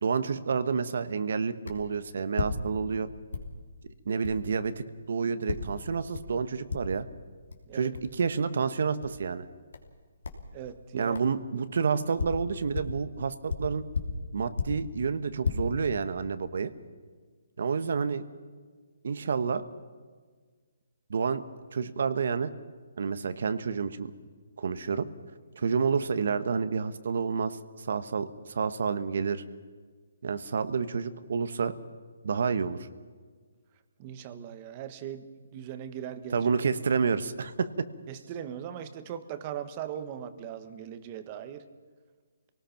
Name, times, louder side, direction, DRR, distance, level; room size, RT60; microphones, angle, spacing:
voice 1, 0.0-3.1 4.0-4.7 5.1-7.0 7.7-9.5 10.9-13.8 14.3-16.7 17.6-18.2 19.0-19.6 21.1-21.4 21.7-22.5 23.0-24.1 24.6-25.0 25.5-29.4 30.2-31.7 32.2-32.8 36.3-37.7, right 5 dB, 60° right, 12 dB, 1.2 m, -29 dB
sound 1, 1.7-1.9 2.3-3.0 3.3-3.6 4.2-4.4 5.5-5.8 6.1-6.4 6.7-7.1 7.5-7.6 7.9-8.1 9.0-9.2 9.7-9.9 10.2-10.5 11.1-11.3 11.9-13.0 13.5-14.9 15.3-15.5, left 4 dB, 85° left, 3.2 m, -34 dB
voice 2, 10.5-11.2 34.0-36.5 38.1-41.6, right 9 dB, 25° right, 11 dB, 1.2 m, -39 dB
26.5 x 18.5 x 5.9 m, 1.5 s
hypercardioid pair, 170°, 0 cm